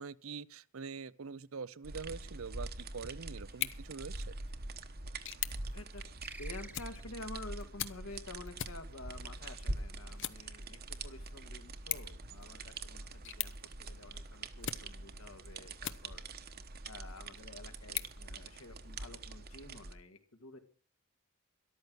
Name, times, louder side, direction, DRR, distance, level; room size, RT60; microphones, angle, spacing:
voice 1, 0.0-4.2, right 5 dB, 70° right, 0.6 m, -44 dB
sound 1, 1.8-19.9, right 2 dB, 45° right, 1.1 m, -44 dB
sound 2, 3.4-16.4 16.9-19.0, left 12 dB, 60° left, 0.8 m, -45 dB
sound 3, 6.2-7.4, right 2 dB, 10° right, 0.9 m, -50 dB
voice 2, 6.4-13.5 13.8-16.2 16.8-20.6, left 2 dB, 75° left, 2.0 m, -50 dB
13.5 x 12.0 x 6.2 m
head